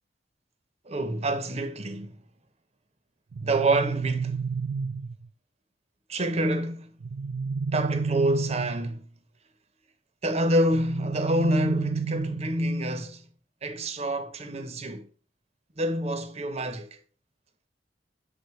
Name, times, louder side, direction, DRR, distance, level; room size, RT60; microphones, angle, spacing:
voice 1, 0.9-2.2 3.4-4.4 6.1-6.9 7.7-9.1 10.2-13.2 13.6-15.1 15.8-16.9, right 1 dB, 35° right, 0.8 m, -27 dB
sound 1, 3.3-5.3 7.0-9.0 10.7-12.7, right 5 dB, 65° right, 0.4 m, -30 dB
8.0 x 3.9 x 4.6 m
head